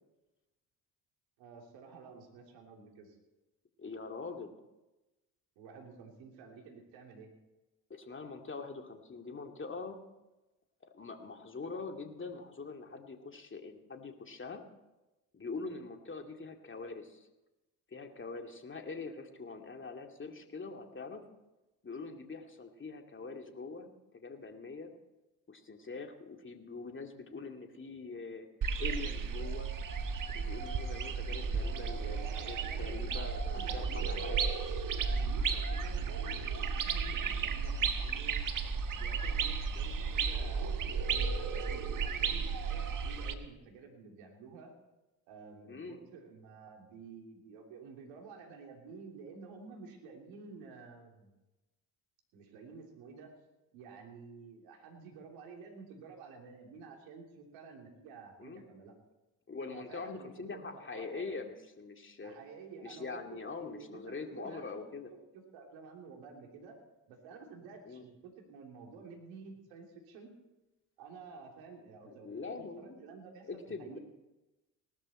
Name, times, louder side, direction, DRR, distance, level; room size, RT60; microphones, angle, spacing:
voice 1, 1.4-3.2 5.6-7.3 31.9-34.3 35.0-38.4 38.9-44.7 45.3-51.3 52.3-53.3 53.7-58.9 59.7-61.3 62.2-64.7 65.5-66.8 67.1-70.3 71.0-74.0, right 5 dB, 75° right, 2 dB, 3.3 m, -51 dB
voice 2, 3.8-4.5 7.9-10.0 10.8-14.6 15.3-17.3 17.9-21.2 21.8-24.9 25.5-28.5 28.8-29.7 30.3-34.5 45.7-46.0 58.4-58.6 59.5-62.4 62.8-65.1 67.8-68.0 72.1-73.0 73.4-74.0, left 4 dB, 25° left, 4 dB, 2.3 m, -43 dB
sound 1, 28.6-43.3, right 5 dB, 40° right, 1.5 m, -34 dB
18.5 x 13.0 x 4.4 m, 1.0 s
hypercardioid pair, 55°, 46 cm